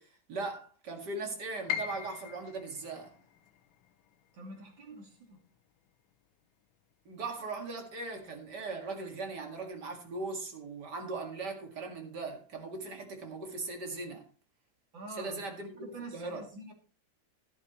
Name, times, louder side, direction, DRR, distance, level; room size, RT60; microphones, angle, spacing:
voice 1, 0.0-3.1 7.1-14.3 15.2-16.5, right 3 dB, 60° right, 2.6 m, -39 dB
Piano, 1.7-7.6 8.0-9.1 9.5-9.6 10.3-10.7, left 8 dB, 85° left, 1.5 m, -43 dB
voice 2, 4.3-5.4 14.9-15.4 15.8-16.7, right 2 dB, 75° right, 3.5 m, -46 dB
13.0 x 11.0 x 3.1 m
omnidirectional pair, 2.1 m